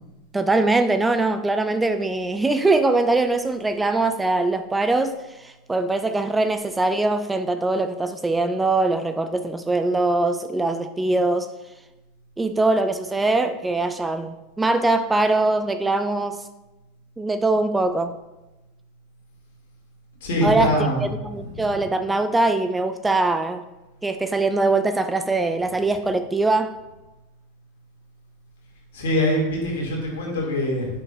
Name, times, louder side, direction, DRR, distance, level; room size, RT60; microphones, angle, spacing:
voice 1, 0.3-11.5 12.4-16.4 17.2-18.1 20.4-20.7 21.0-23.6 24.0-26.8, right 2 dB, 10° right, 8 dB, 0.4 m, -22 dB
voice 2, 20.2-21.7 28.9-30.9, equal, 65° left, -2 dB, 2.3 m, -24 dB
9.0 x 5.9 x 2.5 m, 1.0 s
hypercardioid pair, 85°, 0 cm